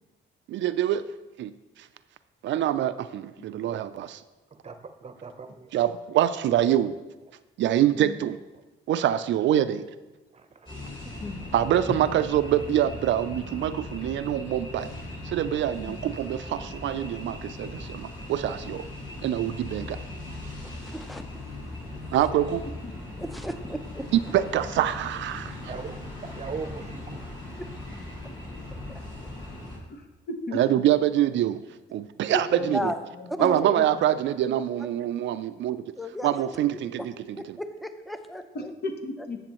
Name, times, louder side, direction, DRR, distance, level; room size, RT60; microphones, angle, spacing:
voice 1, 0.5-1.0 1.4-1.5 2.4-4.2 5.7-7.0 7.6-8.4 8.9-9.9 11.5-14.9 15.2-18.9 19.2-20.0 22.1-22.6 24.1-25.7 30.5-31.6 31.9-32.9 33.4-35.8 36.2-37.6, right 11 dB, 70° right, 13 dB, 0.4 m, -25 dB
voice 2, 4.5-5.7 10.3-10.7 25.7-26.0 26.4-27.3, right 5 dB, 30° right, 8 dB, 0.8 m, -39 dB
sound 1, 10.7-29.8, left 2 dB, 25° left, 3.1 m, -39 dB
voice 3, 20.6-21.2 22.1-22.2 23.2-24.1 28.9-29.0 32.3-32.4 32.7-33.0 33.3-33.6 36.0-36.3 37.0-37.1 37.4-38.7, equal, ahead, 9 dB, 0.6 m, -34 dB
voice 4, 30.0-30.6 32.3-33.3 33.6-34.1 38.5-39.4, left 2 dB, 55° left, 4 dB, 1.3 m, -36 dB
11.5 x 7.1 x 3.0 m, 1.1 s
cardioid pair, 90°, 20 cm